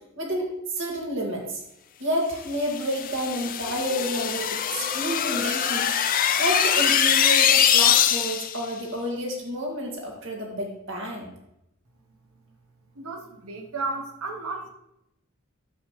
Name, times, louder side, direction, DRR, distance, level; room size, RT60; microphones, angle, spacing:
voice 1, 0.2-1.6 2.0-11.3, equal, 60° right, 0 dB, 2.1 m, -30 dB
sound 1, 2.6-8.6, left 9 dB, 40° left, 0.5 m, -22 dB
voice 2, 12.9-14.7, right 3 dB, 80° right, 3 dB, 1.1 m, -33 dB
11.5 x 7.4 x 3.2 m, 0.83 s
head